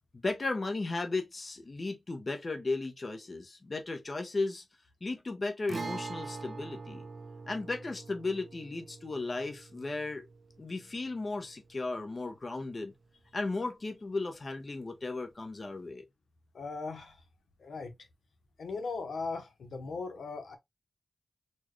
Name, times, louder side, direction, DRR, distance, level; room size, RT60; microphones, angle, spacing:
voice 1, 0.1-4.6 5.0-7.0 7.5-10.3 10.6-12.9 13.3-16.0, left 3 dB, 45° left, 0.7 m, -35 dB
Guitar, 5.7-13.3 13.6-13.7 15.7-15.8, right 3 dB, 60° right, 0.5 m, -44 dB
voice 2, 16.5-17.2 17.6-17.9 18.6-20.6, left 4 dB, 90° left, 0.9 m, -38 dB
4.3 x 2.3 x 3.0 m
wide cardioid pair, 85°, 0 cm